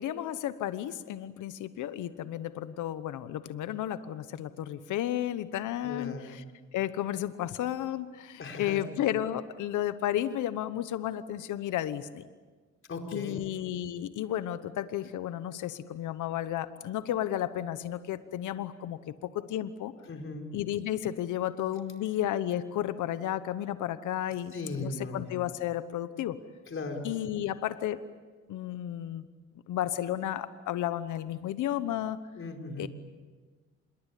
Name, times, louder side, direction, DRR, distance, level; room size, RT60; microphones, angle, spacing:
voice 1, 0.0-6.4 6.7-12.2 13.1-19.9 20.5-26.4 27.0-28.0 28.5-29.3 29.7-32.2 32.8-32.9, left 12 dB, 80° left, 13 dB, 1.1 m, -33 dB
voice 2, 5.8-6.4 8.4-8.8 12.9-13.5 20.1-20.5 24.5-25.2 26.7-27.1 32.4-32.9, left 3 dB, 45° left, 3 dB, 4.9 m, -37 dB
27.0 x 22.0 x 8.4 m, 1.4 s
cardioid pair, 90°, 30 cm